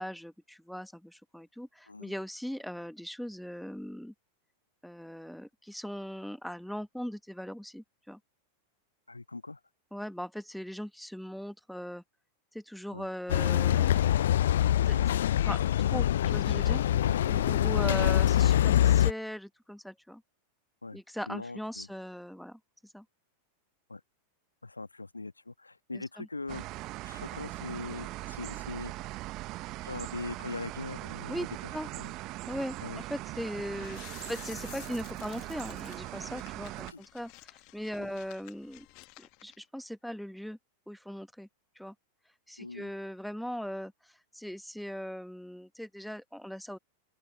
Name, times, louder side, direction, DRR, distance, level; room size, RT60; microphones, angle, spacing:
voice 1, 0.0-4.1 4.8-8.2 9.9-12.0 12.5-13.9 14.9-15.2 15.4-16.8 17.2-20.2 20.9-22.6 22.9-23.0 25.9-26.3 31.3-31.4 31.7-31.9 32.5-38.9 39.2-40.6 40.9-41.5 41.7-41.9 42.5-43.9 44.3-46.8, equal, ahead, 1.6 m, -39 dB
voice 2, 9.1-9.6 12.9-13.0 14.9-15.2 17.0-17.2 17.8-18.5 20.8-21.0 21.3-21.9 23.9-24.0 24.6-26.6 27.0-28.9 29.8-31.5 31.9-32.1 32.8-33.0 36.9-37.0 38.0-38.2 42.6-42.9, left 3 dB, 80° left, 1.7 m, -41 dB
sound 1, 13.3-19.1, left 11 dB, 60° left, 0.4 m, -24 dB
sound 2, 26.5-36.9, right 19 dB, 40° right, 1.2 m, -40 dB
sound 3, 33.7-39.6, left 27 dB, 45° left, 1.8 m, -52 dB
open air
figure-of-eight pair, 90°, 0 cm